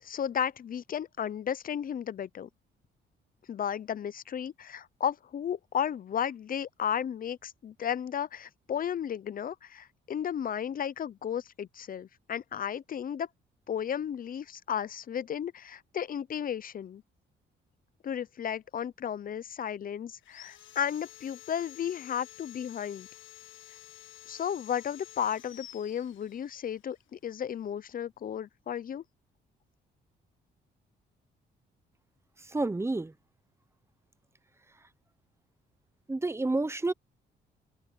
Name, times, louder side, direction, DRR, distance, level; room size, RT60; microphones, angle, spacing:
voice 1, 0.0-2.5 3.5-13.3 13.7-17.0 18.0-23.1 24.3-29.0, left 9 dB, 45° left, 0.7 m, -34 dB
Sawing, 20.2-26.7, left 13 dB, 75° left, 1.6 m, -50 dB
voice 2, 32.4-33.1 36.1-36.9, right 2 dB, 15° right, 0.8 m, -29 dB
cardioid pair, 90°, 20 cm